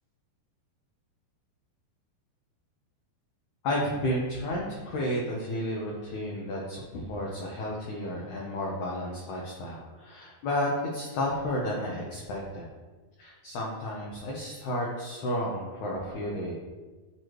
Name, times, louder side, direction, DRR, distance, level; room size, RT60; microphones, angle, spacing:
voice 1, 3.6-12.7 13.2-16.5, left 1 dB, 85° left, -3 dB, 1.7 m, -32 dB
11.5 x 4.6 x 3.0 m, 1.3 s
omnidirectional pair, 4.9 m